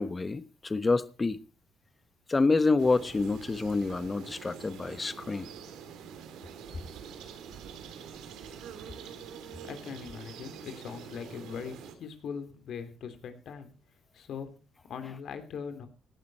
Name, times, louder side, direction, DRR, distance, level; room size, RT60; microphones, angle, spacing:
voice 1, 0.0-1.4 2.3-5.5, left 3 dB, 25° left, 1.1 m, -27 dB
sound 1, 2.8-11.9, right 7 dB, 85° right, 2.5 m, -46 dB
voice 2, 9.6-13.7 14.1-14.5 14.9-15.9, left 6 dB, 70° left, 3.1 m, -40 dB
17.0 x 12.0 x 4.2 m
cardioid pair, 90°, 0 cm